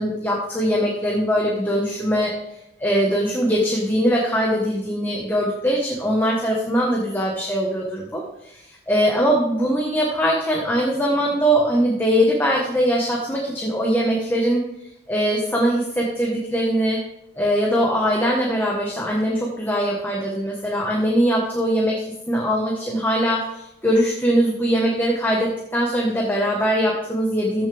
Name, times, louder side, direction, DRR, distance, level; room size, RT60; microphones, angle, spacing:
voice 1, 0.0-2.4 2.8-14.6 15.1-17.0 17.4-27.7, equal, 10° left, -2 dB, 1.3 m, -21 dB
14.5 x 6.8 x 3.5 m, 0.82 s
head